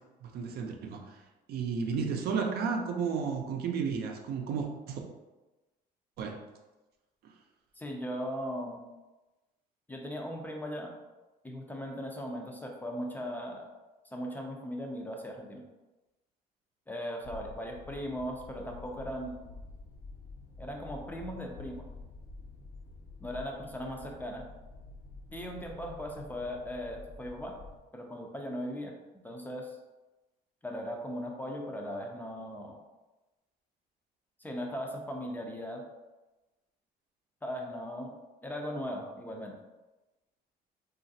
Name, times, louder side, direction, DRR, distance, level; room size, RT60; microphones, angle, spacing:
voice 1, 0.2-1.1 1.5-5.0 6.2-6.3, right 5 dB, 65° right, 2 dB, 0.5 m, -32 dB
voice 2, 7.8-8.9 9.9-10.9 11.4-13.7 14.1-15.6 16.9-19.4 20.6-21.9 23.2-24.4 25.3-27.6 27.9-28.9 29.2-29.8 30.6-32.8 34.4-35.8 37.4-38.1 38.4-39.6, equal, 10° left, 1 dB, 0.4 m, -38 dB
sound 1, 17.2-27.8, left 3 dB, 70° left, 1.0 m, -49 dB
3.0 x 2.4 x 2.6 m, 1.1 s
cardioid pair, 110°, 17 cm